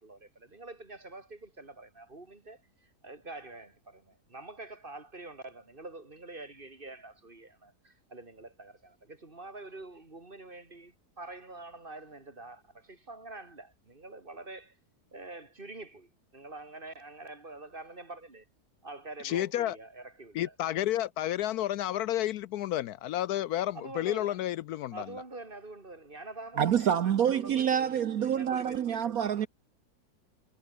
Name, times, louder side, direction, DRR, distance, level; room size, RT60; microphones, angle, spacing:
voice 1, 0.0-14.7 15.1-18.4 18.8-20.5 23.7-24.4 24.9-29.0, right 2 dB, 30° right, 3.2 m, -46 dB
voice 2, 19.2-19.8 20.3-25.1, left 13 dB, 75° left, 1.0 m, -31 dB
voice 3, 26.6-29.5, right 9 dB, 65° right, 1.3 m, -27 dB
omnidirectional pair, 1.8 m